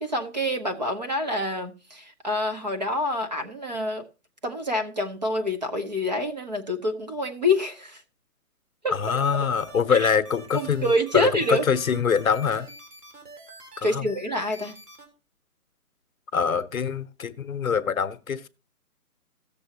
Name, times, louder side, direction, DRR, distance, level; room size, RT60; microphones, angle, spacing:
voice 1, 0.0-4.0 4.4-8.0 8.8-8.9 9.9-10.1 10.5-11.7 13.8-14.8, left 1 dB, 30° right, 0.7 m, -27 dB
voice 2, 8.9-12.7 13.8-14.1 16.3-18.5, left 6 dB, 65° left, 0.8 m, -24 dB
sound 1, 9.0-15.1, right 2 dB, 85° right, 3.6 m, -46 dB
16.5 x 6.9 x 2.8 m
hypercardioid pair, 170°, 45 cm